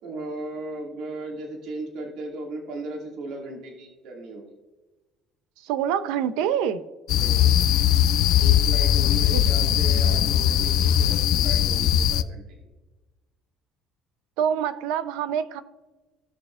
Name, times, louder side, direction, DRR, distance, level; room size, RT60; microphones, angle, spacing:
voice 1, 0.0-4.6 7.1-7.6 8.4-12.7, right 2 dB, 70° right, 0 dB, 2.3 m, -36 dB
voice 2, 5.6-6.8 9.3-9.4 14.4-15.6, right 9 dB, 85° right, 12 dB, 0.7 m, -25 dB
sound 1, 7.1-12.2, left 10 dB, 65° left, 0.5 m, -20 dB
17.0 x 6.6 x 2.5 m, 1.2 s
cardioid pair, 135°, 0 cm